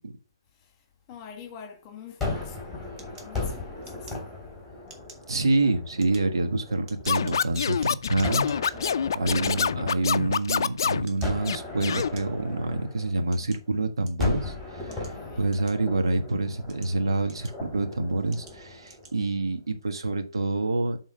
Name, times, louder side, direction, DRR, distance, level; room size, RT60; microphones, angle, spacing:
voice 1, 1.1-4.4 9.0-9.5 14.9-15.5, left 8 dB, 25° left, 1.5 m, -46 dB
Gunshot gunfire, 2.2-7.3 8.2-10.6 11.2-13.7 14.2-19.4, left 3 dB, ahead, 3.2 m, -37 dB
sound 1, 3.0-4.5 4.8-5.3 5.8-8.9 9.4-10.7 11.0-11.5 12.0-12.2 12.9-14.4 14.9-16.1 16.5-17.8 18.3-18.6 18.8-19.2, right 3 dB, 25° right, 1.5 m, -50 dB
voice 2, 5.3-8.9 9.1-15.1 15.4-21.0, right 2 dB, 85° right, 1.4 m, -27 dB
Scratching (performance technique), 7.1-11.1 11.4-12.1, left 7 dB, 65° left, 0.4 m, -26 dB
7.5 x 3.8 x 5.0 m
hypercardioid pair, 150°, 2 cm